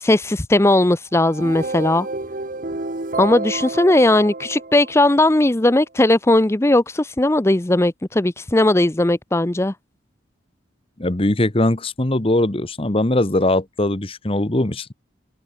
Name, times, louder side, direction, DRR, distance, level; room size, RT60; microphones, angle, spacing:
voice 1, 0.0-2.1 3.2-9.7, left 1 dB, 15° left, 0.6 m, -17 dB
sound 1, 1.2-5.4, right 2 dB, 45° right, 1.3 m, -30 dB
voice 2, 11.0-14.9, left 1 dB, 30° left, 1.2 m, -20 dB
head